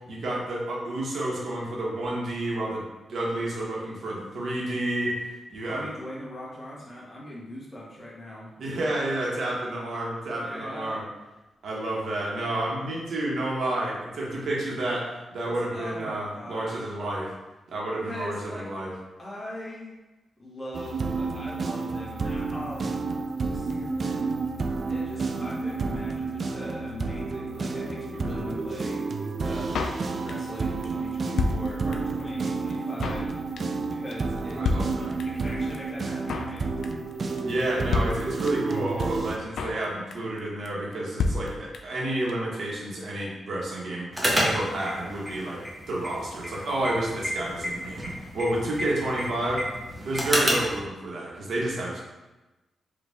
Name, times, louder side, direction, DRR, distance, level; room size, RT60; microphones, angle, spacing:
voice 1, 0.1-5.2 5.5-5.9 8.6-11.0 11.6-17.3 17.7-18.9 34.5-35.3 37.4-49.6 50.0-52.0, right 1 dB, 70° right, -4 dB, 1.2 m, -30 dB
voice 2, 5.6-8.5 10.4-11.0 15.4-17.0 18.0-18.6 19.2-20.0 20.4-24.4 24.9-29.0 29.4-29.8 30.2-33.3 33.9-36.7, left 1 dB, 20° left, -6 dB, 1.4 m, -40 dB
sound 1, 20.7-39.4, right 4 dB, 45° right, 0.3 m, -30 dB
Drum kit, 29.7-30.6 30.8-30.9 31.1-32.2 32.5-32.6 32.7-33.3 33.6-33.8 34.1-34.2 34.4-34.5 34.6-35.5 35.7-35.8 36.0-36.6 36.8-37.1 37.4-37.5 37.7-37.8 37.9-38.8 39.0-39.1 39.3-39.8 40.1-40.4 40.6-40.7 40.9-41.0 41.2-42.0 42.3-42.4 42.6-42.7, left 3 dB, 85° left, 0.4 m, -29 dB
sound 2, 44.1-50.8, equal, 10° right, 0.9 m, -30 dB
4.9 x 2.5 x 3.5 m, 1.1 s
wide cardioid pair, 130°, 0 cm